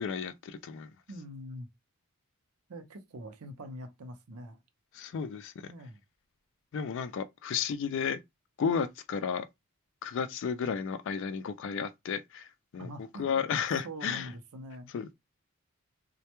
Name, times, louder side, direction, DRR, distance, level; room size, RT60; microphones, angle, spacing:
voice 1, 0.0-0.9 4.9-5.7 6.7-8.2 8.6-9.5 10.0-12.9 13.2-14.3 14.9-15.1, left 6 dB, 55° left, 0.3 m, -33 dB
voice 2, 1.1-1.7 2.7-4.6 5.7-6.0 12.8-13.4 13.8-14.9, equal, 80° right, 0.6 m, -44 dB
2.1 x 2.1 x 2.9 m
head